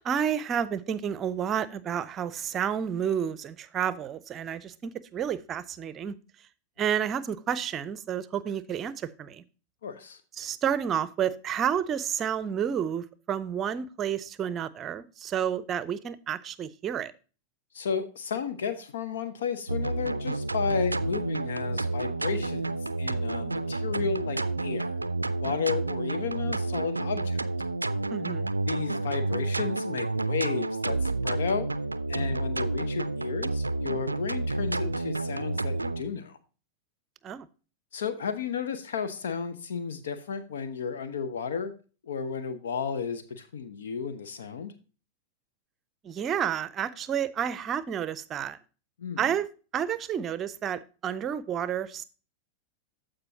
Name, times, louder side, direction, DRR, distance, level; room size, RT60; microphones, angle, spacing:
voice 1, 0.0-6.2 6.8-9.4 10.4-17.1 28.1-28.5 37.2-37.5 46.0-48.6 49.2-49.5 49.7-52.0, right 8 dB, 30° right, 0.6 m, -30 dB
voice 2, 9.8-10.2 17.7-25.0 25.4-27.4 28.7-31.7 32.1-36.4 37.9-41.7 42.0-44.7 49.0-49.3, left 6 dB, 65° left, 0.9 m, -33 dB
sound 1, 19.7-36.0, right 2 dB, 80° right, 0.4 m, -30 dB
14.5 x 5.1 x 2.8 m
figure-of-eight pair, 90°, 0 cm